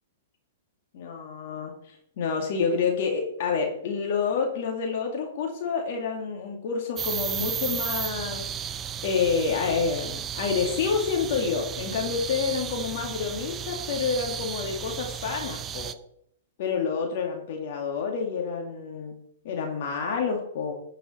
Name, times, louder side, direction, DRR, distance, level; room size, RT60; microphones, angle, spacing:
voice 1, 0.9-8.5 9.0-15.9 16.6-19.2 19.4-20.7, left 5 dB, 60° left, 2 dB, 2.3 m, -28 dB
sound 1, 7.0-15.9, right 8 dB, 25° right, 0.6 m, -34 dB
11.5 x 5.7 x 5.6 m, 0.71 s
hypercardioid pair, 120°, 0 cm